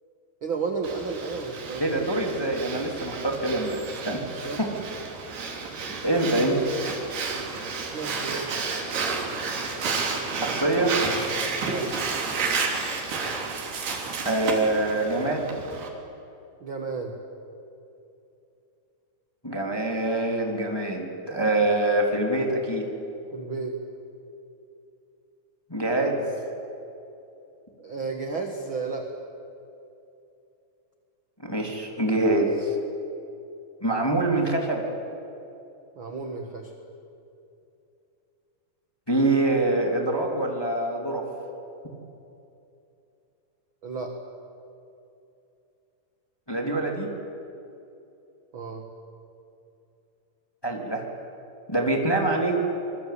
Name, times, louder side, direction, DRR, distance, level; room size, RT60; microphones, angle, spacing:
voice 1, 0.4-1.9 4.4-4.6 6.1-6.2 6.6-6.7 7.9-8.6 11.6-11.9 16.6-17.1 23.3-23.7 27.8-29.1 36.0-36.7 43.8-44.1 48.5-48.8, right 4 dB, 45° right, 3 dB, 1.9 m, -32 dB
Breathing, 0.8-15.9, right 4 dB, 85° right, 5.1 m, -31 dB
voice 2, 1.8-3.8 4.0-4.2 4.6-4.7 6.0-6.6 10.3-10.9 14.2-15.5 19.4-22.9 25.7-26.3 31.4-32.7 33.8-34.8 39.1-41.2 46.5-47.1 50.6-51.0 51.7-52.6, right 2 dB, 5° left, 1 dB, 2.5 m, -25 dB
25.5 x 24.5 x 8.5 m, 2.7 s
omnidirectional pair, 4.4 m